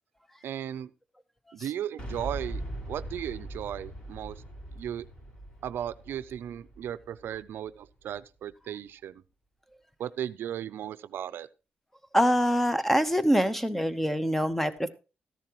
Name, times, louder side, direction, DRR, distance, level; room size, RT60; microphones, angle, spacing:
voice 1, 0.4-0.9 1.5-2.6 2.9-4.4 4.7-5.1 5.6-9.2 10.0-11.5, right 10 dB, 80° right, 0.4 m, -36 dB
Boom, 2.0-7.9, right 1 dB, 30° left, 5.0 m, -41 dB
voice 2, 12.1-14.9, equal, 5° left, 0.9 m, -24 dB
13.5 x 10.5 x 3.0 m
cardioid pair, 90°, 4 cm